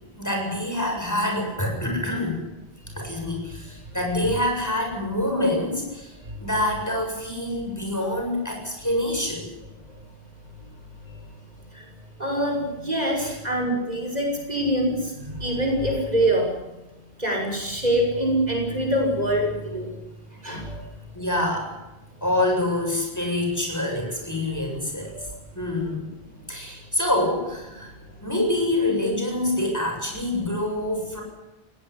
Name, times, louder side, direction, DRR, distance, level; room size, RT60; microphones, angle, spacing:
voice 1, 0.2-2.4 3.0-6.1 6.4-9.5 13.2-13.4 21.1-21.7 22.2-25.1 25.5-26.1 26.5-27.9 28.2-31.2, left 1 dB, 15° left, 1 dB, 7.5 m, -26 dB
voice 2, 12.2-16.5 17.2-19.9 20.4-20.8 25.1-25.3, right 1 dB, 40° right, 1 dB, 6.2 m, -24 dB
21.0 x 18.0 x 9.9 m, 1.0 s
omnidirectional pair, 1.1 m